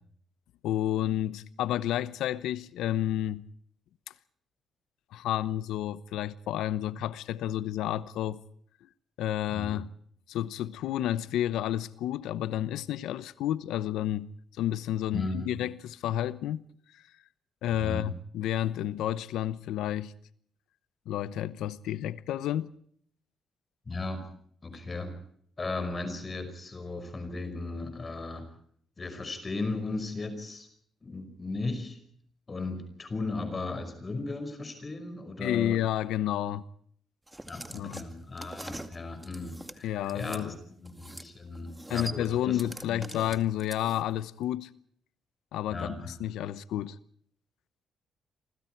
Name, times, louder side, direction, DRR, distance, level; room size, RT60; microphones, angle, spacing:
voice 1, 0.6-3.4 5.1-8.4 9.2-9.9 10.3-14.3 14.6-16.6 16.9-17.0 17.6-20.1 21.1-22.7 35.4-36.6 37.7-38.0 39.8-40.5 41.9-44.7 45.5-47.0, left 12 dB, 90° left, 0.9 m, -30 dB
voice 2, 15.1-15.6 17.8-18.1 23.9-24.2 24.6-25.2 25.6-28.5 29.0-30.7 31.0-32.0 32.5-35.8 37.5-40.5 40.8-42.6 42.9-43.0 45.7-46.1, left 3 dB, 30° left, 5.4 m, -36 dB
sound 1, 37.3-40.4 40.8-41.3 41.5-44.2, right 1 dB, 10° right, 2.2 m, -43 dB
27.5 x 25.0 x 4.6 m
cardioid pair, 100°, 0 cm